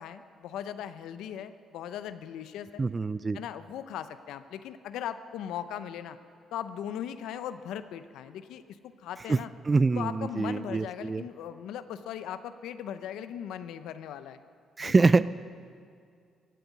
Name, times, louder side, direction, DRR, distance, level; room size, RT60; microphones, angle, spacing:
voice 1, 0.0-2.8 3.3-6.2 6.5-9.5 10.0-14.4 14.8-14.9, left 9 dB, 85° left, 11 dB, 0.6 m, -38 dB
voice 2, 2.8-3.4 9.3-9.4 9.7-11.2 14.8-15.3, right 3 dB, 30° right, 16 dB, 0.4 m, -24 dB
15.0 x 9.4 x 9.4 m, 2.2 s
cardioid pair, 90°, 0 cm